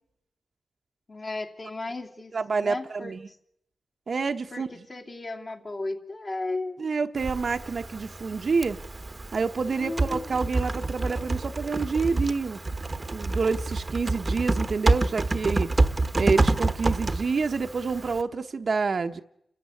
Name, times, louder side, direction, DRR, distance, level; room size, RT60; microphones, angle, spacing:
voice 1, 1.1-3.4 4.5-6.8 9.7-10.4, left 2 dB, 45° left, 2.7 m, -35 dB
voice 2, 2.3-3.2 4.1-4.7 6.8-8.8 9.3-12.6 13.1-15.7 16.2-19.2, right 4 dB, 55° right, 1.0 m, -28 dB
Typing, 7.2-18.2, right 2 dB, 30° right, 1.1 m, -28 dB
29.0 x 13.5 x 9.7 m
wide cardioid pair, 100°, 0 cm